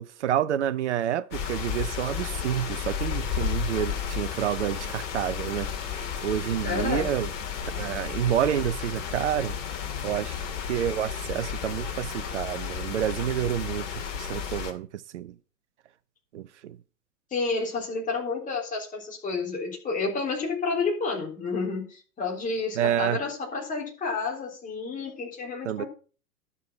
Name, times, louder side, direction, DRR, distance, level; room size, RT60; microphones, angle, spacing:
voice 1, 0.0-5.7 6.2-7.3 7.8-9.6 10.0-10.3 10.7-13.9 14.2-15.4 16.3-16.8 22.8-23.2 25.6-25.8, right 10 dB, 45° right, 0.7 m, -28 dB
sound 1, 1.3-14.7, left 8 dB, 45° left, 2.2 m, -33 dB
voice 2, 6.6-7.1 17.3-25.9, left 4 dB, 15° left, 3.6 m, -30 dB
11.0 x 6.7 x 5.8 m
figure-of-eight pair, 105°, 49 cm